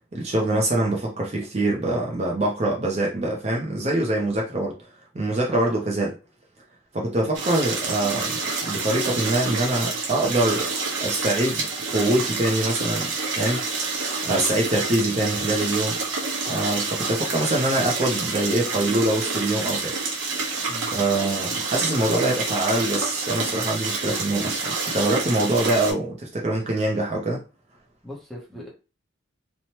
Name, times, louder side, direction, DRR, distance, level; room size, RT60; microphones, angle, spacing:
voice 1, 0.1-4.7 5.1-6.1 6.9-8.4 8.7-10.7 11.0-13.1 13.4-13.9 14.2-16.0 16.5-20.0 20.8-27.4, right 1 dB, 35° right, 0.5 m, -24 dB
voice 2, 5.5-5.9 20.7-21.0 28.0-28.7, equal, ahead, 0.8 m, -39 dB
sound 1, 7.3-25.9, right 4 dB, 85° right, 0.8 m, -28 dB
2.9 x 2.1 x 2.8 m
head